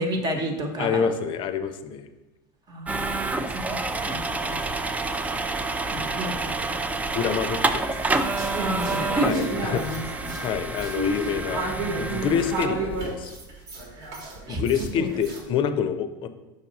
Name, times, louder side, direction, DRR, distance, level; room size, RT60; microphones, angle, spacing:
voice 1, 0.0-1.1 2.7-3.1 3.5-3.8 4.1-4.2 4.5-4.6 5.9-6.3 6.7-6.8 8.5-10.4 11.7-12.1 14.5-14.6 15.0-15.1, right 1 dB, 35° right, 4 dB, 1.1 m, -30 dB
voice 2, 0.8-2.1 3.3-3.4 7.1-7.9 9.2-10.0 10.4-13.3 14.5-16.3, left 7 dB, 45° left, 10 dB, 0.6 m, -27 dB
sound 1, 2.9-12.7, right 3 dB, 15° right, 0.4 m, -28 dB
sound 2, 8.0-15.4, right 2 dB, 70° right, 1.5 m, -33 dB
5.4 x 4.6 x 4.1 m, 1.0 s
supercardioid pair, 100°, 11 cm